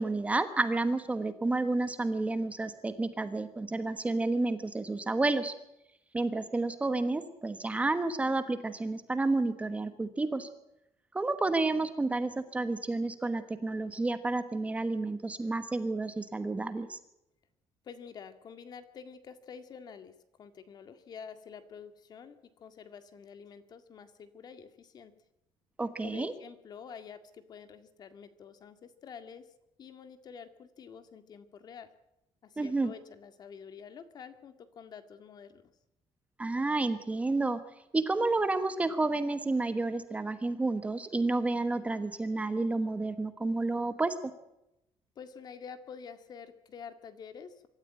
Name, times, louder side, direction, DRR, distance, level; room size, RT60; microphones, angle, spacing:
voice 1, 0.0-5.5 6.1-10.5 11.1-17.0 25.8-26.3 32.6-32.9 36.4-37.6 37.9-44.1, right 2 dB, 15° right, 10 dB, 1.3 m, -30 dB
voice 2, 17.8-22.4 22.6-25.1 26.0-29.4 29.8-31.9 32.4-35.7 45.2-47.7, left 6 dB, 40° left, 10 dB, 2.0 m, -48 dB
25.0 x 13.5 x 9.0 m, 0.85 s
cardioid pair, 165°, 10 cm